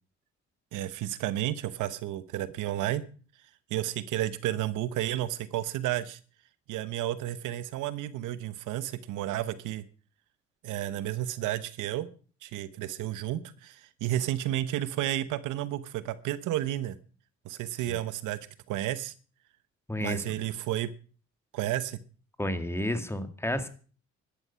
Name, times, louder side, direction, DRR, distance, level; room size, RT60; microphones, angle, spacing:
voice 1, 0.7-3.1 3.7-6.2 6.7-9.8 10.6-12.1 12.4-17.0 17.4-18.4 18.7-19.1 20.0-20.9 21.5-22.0, right 13 dB, 90° right, 14 dB, 1.1 m, -32 dB
voice 2, 19.9-20.2 22.4-23.7, left 1 dB, 10° left, 9 dB, 2.0 m, -31 dB
14.0 x 12.0 x 5.7 m, 0.40 s
cardioid pair, 90°, 30 cm